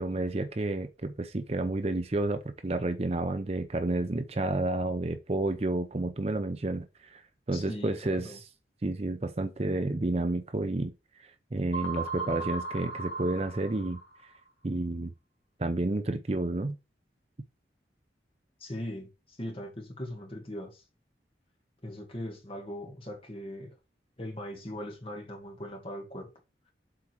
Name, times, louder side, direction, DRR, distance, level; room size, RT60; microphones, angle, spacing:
voice 1, 0.0-7.2 7.5-8.3 8.8-10.9 11.2-14.0 14.6-15.1 15.6-16.8, right 2 dB, 35° right, 0.6 m, -30 dB
voice 2, 7.5-8.4 18.6-20.8 21.8-23.8 24.2-26.3, left 1 dB, 30° left, 2.1 m, -40 dB
sound 1, 11.7-14.3, right 3 dB, 50° left, 2.1 m, -36 dB
7.7 x 4.3 x 4.6 m
head